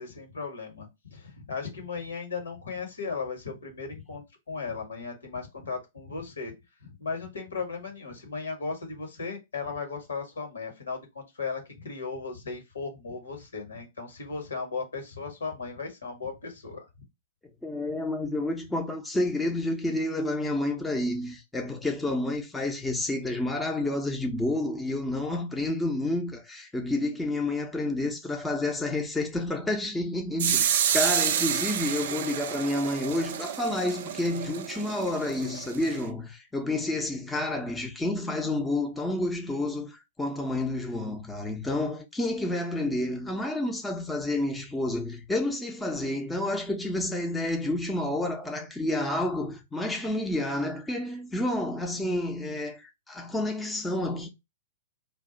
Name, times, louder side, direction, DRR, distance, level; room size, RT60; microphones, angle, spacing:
voice 1, 0.0-6.5 6.8-16.8, left 4 dB, 75° left, 1.1 m, -36 dB
voice 2, 17.6-54.3, left 1 dB, 10° left, 0.6 m, -29 dB
sound 1, 30.4-36.0, right 9 dB, 55° right, 0.3 m, -29 dB
2.3 x 2.2 x 3.8 m
figure-of-eight pair, 105°, 0 cm